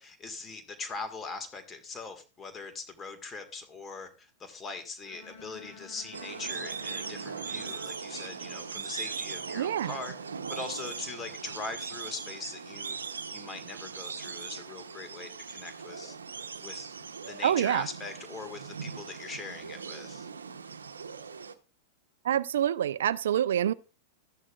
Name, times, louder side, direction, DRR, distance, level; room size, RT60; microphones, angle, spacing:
voice 1, 0.0-16.2 16.6-20.3, left 4 dB, 20° left, 1.8 m, -41 dB
Bowed string instrument, 5.0-9.2, left 3 dB, 60° left, 4.8 m, -51 dB
sound 1, 6.1-21.5, right 5 dB, 90° right, 0.8 m, -40 dB
voice 2, 9.6-9.9 17.4-17.8 22.2-23.7, right 10 dB, 70° right, 0.4 m, -26 dB
13.5 x 11.0 x 2.4 m
hypercardioid pair, 105°, 0 cm